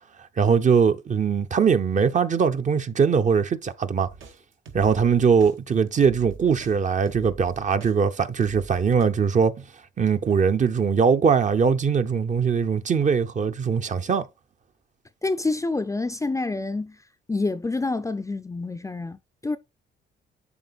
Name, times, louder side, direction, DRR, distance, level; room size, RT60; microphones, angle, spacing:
voice 1, 0.4-4.1 4.7-9.5 10.0-14.3, right 6 dB, 40° right, 0.7 m, -21 dB
sound 1, 4.0-8.0 8.4-9.1, right 5 dB, 80° right, 1.4 m, -44 dB
voice 2, 15.2-17.0 17.3-19.6, left 3 dB, 15° left, 0.4 m, -27 dB
11.0 x 3.8 x 2.4 m
cardioid pair, 90°, 20 cm